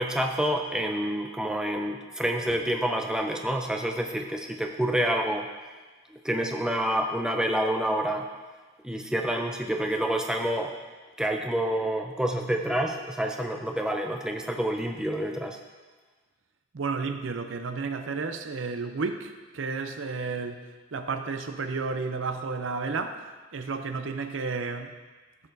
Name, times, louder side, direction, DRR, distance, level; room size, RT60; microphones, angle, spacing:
voice 1, 0.0-5.5 6.2-8.3 8.8-10.8 11.2-15.6, right 1 dB, 5° right, 2 dB, 0.5 m, -28 dB
voice 2, 16.7-23.2 23.5-24.9, right 4 dB, 70° right, 7 dB, 0.6 m, -32 dB
14.0 x 6.6 x 2.7 m, 1.3 s
head